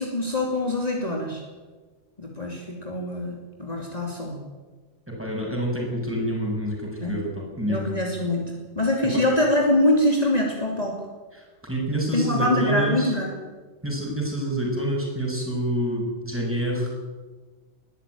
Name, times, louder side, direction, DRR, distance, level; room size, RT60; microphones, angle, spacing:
voice 1, 0.0-1.4 2.2-4.4 7.0-7.2 7.7-11.0 12.1-13.4, left 1 dB, 35° left, -1 dB, 2.8 m, -24 dB
voice 2, 5.1-7.9 9.1-9.2 11.3-13.1 13.8-17.0, right 1 dB, 10° right, -2 dB, 6.3 m, -27 dB
20.0 x 14.0 x 9.2 m, 1.4 s
omnidirectional pair, 1.2 m